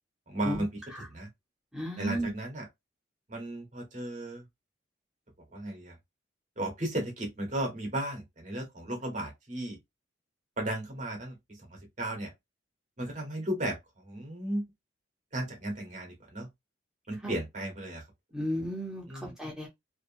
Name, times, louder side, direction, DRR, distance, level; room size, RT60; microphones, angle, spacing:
voice 1, 0.3-1.3 2.0-2.7 3.3-4.4 5.5-6.0 6.6-9.8 10.6-12.3 13.0-14.6 15.3-16.5 17.1-18.0 19.0-19.3, right 1 dB, 40° right, 1.0 m, -35 dB
voice 2, 1.7-2.3 17.2-17.3 18.3-19.7, equal, 5° right, 0.8 m, -34 dB
2.6 x 2.4 x 2.5 m
head